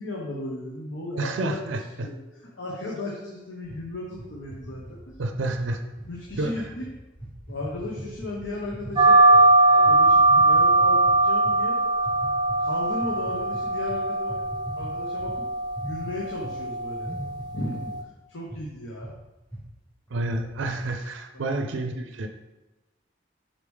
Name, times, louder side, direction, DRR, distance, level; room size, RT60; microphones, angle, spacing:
voice 1, 0.0-1.6 2.0-2.2 2.4-5.1 6.1-6.8 7.5-9.2 9.5-11.8 12.6-14.5 14.7-15.4 15.8-17.1 17.5-17.9 18.3-19.1 21.3-21.5, left 2 dB, 85° left, -3 dB, 1.0 m, -35 dB
voice 2, 1.2-2.1 5.2-5.8 6.4-6.5 20.1-22.3, right 2 dB, 80° right, 6 dB, 0.4 m, -29 dB
sound 1, 3.6-9.5 9.8-11.6 12.0-12.6 13.0-16.6 16.8-18.0 18.5-18.6 19.0-19.2 19.5-19.6 20.1-20.9, right 1 dB, 5° left, 0.9 m, -40 dB
sound 2, 9.0-18.0, right 2 dB, 20° right, 0.4 m, -21 dB
5.7 x 4.8 x 3.5 m, 1.1 s
head